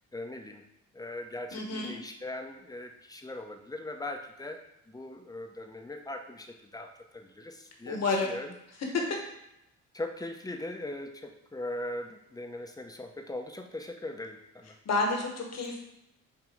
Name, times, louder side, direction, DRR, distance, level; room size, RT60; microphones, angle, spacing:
voice 1, 0.1-0.6 0.9-4.6 4.9-8.5 9.9-14.7, left 1 dB, 10° left, 4 dB, 0.7 m, -40 dB
voice 2, 1.5-1.9 7.9-8.3 14.8-15.8, left 3 dB, 60° left, 1 dB, 1.4 m, -29 dB
6.4 x 2.9 x 5.0 m, 0.85 s
cardioid pair, 90°, 30 cm